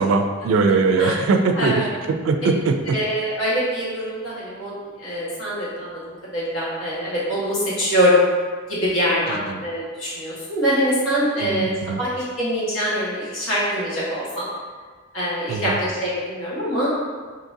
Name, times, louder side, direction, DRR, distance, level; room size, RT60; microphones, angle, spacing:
voice 1, 0.0-3.0 9.3-9.6 11.4-12.0 15.5-15.8, right 4 dB, 80° right, 6 dB, 0.3 m, -21 dB
voice 2, 1.5-1.9 2.9-8.2 8.7-14.5 15.1-17.0, equal, 70° left, -8 dB, 1.3 m, -24 dB
3.7 x 2.8 x 2.6 m, 1.5 s
head